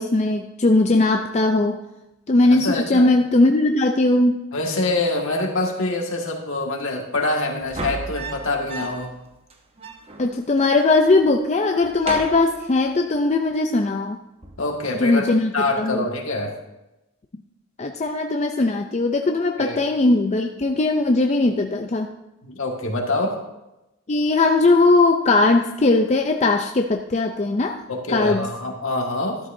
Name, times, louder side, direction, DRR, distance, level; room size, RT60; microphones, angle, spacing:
voice 1, 0.0-1.8 2.3-4.4 10.2-14.2 15.0-15.5 15.8-16.0 17.8-22.1 24.1-27.8 28.1-28.5, left 2 dB, 30° left, 4 dB, 0.5 m, -19 dB
voice 2, 2.4-3.1 4.5-9.1 14.6-15.2 15.5-16.5 19.6-19.8 22.4-23.4 27.9-29.4, left 2 dB, 65° left, 1 dB, 1.8 m, -25 dB
sound 1, 7.6-9.2 9.5-9.6 9.8-10.8 11.1-11.4 11.8-13.2 14.4-14.8, right 2 dB, 25° right, 0.9 m, -35 dB
12.5 x 12.0 x 2.7 m, 0.96 s
head